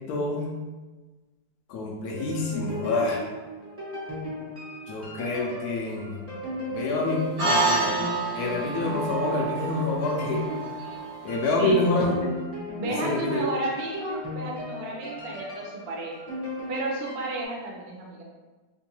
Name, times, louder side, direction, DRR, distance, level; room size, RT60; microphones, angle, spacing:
voice 1, 0.1-0.5 1.7-3.2 4.9-6.3 6.7-7.9 8.3-10.4 11.2-12.1 13.0-13.4, left 2 dB, 70° left, -2 dB, 0.9 m, -27 dB
sound 1, 2.2-17.4, left 1 dB, 10° right, 0.6 m, -36 dB
sound 2, 7.4-12.0, right 3 dB, 60° right, 1.3 m, -29 dB
voice 2, 12.8-16.2 16.7-18.2, right 2 dB, 85° right, -2 dB, 0.5 m, -32 dB
3.8 x 2.6 x 2.7 m, 1.3 s
omnidirectional pair, 2.0 m